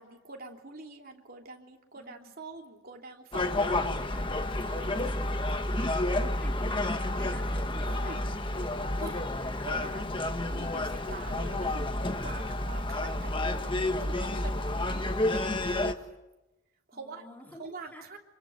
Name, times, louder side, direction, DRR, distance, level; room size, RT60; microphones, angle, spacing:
voice 1, 0.0-5.2 7.8-8.2 9.0-9.2 9.6-15.9 16.9-17.2 17.6-18.2, right 3 dB, 45° right, 2 dB, 3.3 m, -45 dB
voice 2, 2.0-2.3 6.1-9.9 16.9-18.1, left 1 dB, 10° left, 1 dB, 3.5 m, -48 dB
Gull seagull, 3.3-15.9, left 1 dB, 25° left, 1.4 m, -30 dB
27.5 x 25.0 x 6.5 m, 0.98 s
head